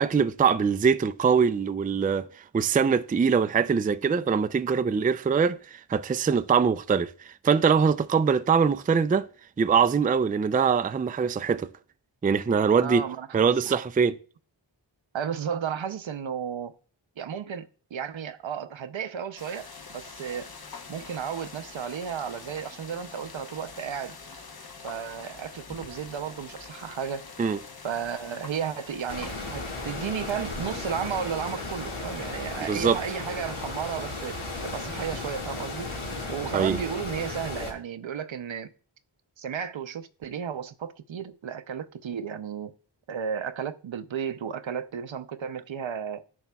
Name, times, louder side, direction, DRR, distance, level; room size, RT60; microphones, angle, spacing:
voice 1, 0.0-2.2 2.5-9.3 9.6-11.7 12.2-13.0 13.3-14.1 27.4-27.6 32.6-33.0 36.5-36.8, right 6 dB, 20° right, 0.3 m, -23 dB
voice 2, 12.8-13.4 13.7-13.8 15.1-16.7 17.2-20.5 20.9-24.1 24.8-27.3 27.8-34.4 34.6-35.9 36.3-38.7 39.4-42.7 43.1-46.2, right 7 dB, 75° right, 0.7 m, -33 dB
sound 1, 19.4-36.3, left 4 dB, 50° left, 0.9 m, -45 dB
sound 2, 29.1-37.7, left 2 dB, 85° left, 1.9 m, -35 dB
11.0 x 7.0 x 2.3 m
wide cardioid pair, 50°, 47 cm